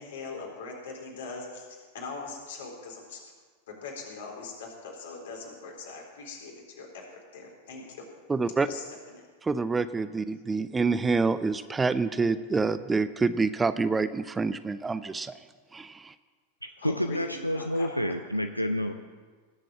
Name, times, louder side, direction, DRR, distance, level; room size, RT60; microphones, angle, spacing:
voice 1, 0.0-3.2 3.7-7.0 7.3-8.0 8.7-9.2 16.8-18.1, left 4 dB, 60° left, 0 dB, 4.0 m, -41 dB
voice 2, 8.3-8.7 9.4-15.3 15.7-16.1, right 4 dB, 15° right, 13 dB, 0.5 m, -27 dB
voice 3, 16.6-18.9, equal, 90° left, 7 dB, 0.6 m, -29 dB
19.5 x 7.6 x 7.4 m, 1.5 s
figure-of-eight pair, 90°, 0 cm